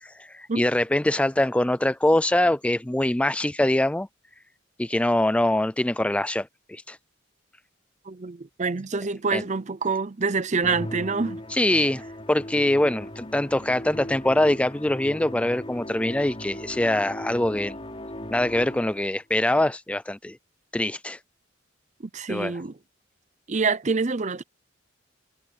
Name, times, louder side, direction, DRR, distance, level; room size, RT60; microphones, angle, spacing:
voice 1, 0.0-4.1 4.8-7.0 9.3-9.4 11.5-12.0 12.3-17.8 18.3-20.4 20.7-21.2 22.3-22.5, left 1 dB, 5° left, 0.4 m, -23 dB
voice 2, 8.1-11.4 22.0-22.8 23.5-24.4, right 4 dB, 40° right, 0.7 m, -26 dB
Musical instrument, 10.6-19.2, left 1 dB, 30° left, 4.2 m, -38 dB
head